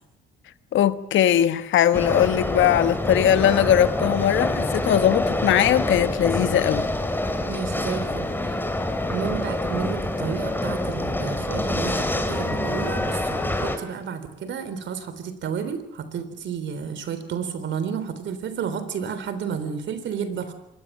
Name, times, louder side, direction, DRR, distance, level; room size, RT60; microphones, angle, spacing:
voice 1, 0.7-6.9, left 10 dB, 75° left, 1.2 m, -20 dB
sound 1, 1.9-13.8, left 1 dB, 10° left, 3.3 m, -26 dB
voice 2, 7.5-8.5 9.1-20.5, right 7 dB, 70° right, 3.6 m, -31 dB
26.0 x 21.0 x 7.4 m
cardioid pair, 90°, 20 cm